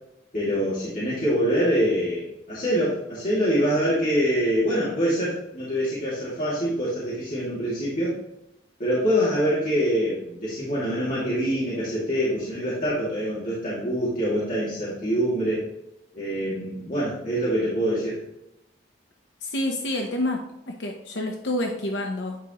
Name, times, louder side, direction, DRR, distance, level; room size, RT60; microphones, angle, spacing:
voice 1, 0.3-8.2 8.8-15.6 16.1-18.2, equal, 45° left, -9 dB, 2.6 m, -25 dB
voice 2, 19.4-22.4, left 1 dB, 75° left, 2 dB, 0.9 m, -28 dB
9.8 x 4.9 x 3.0 m, 0.84 s
head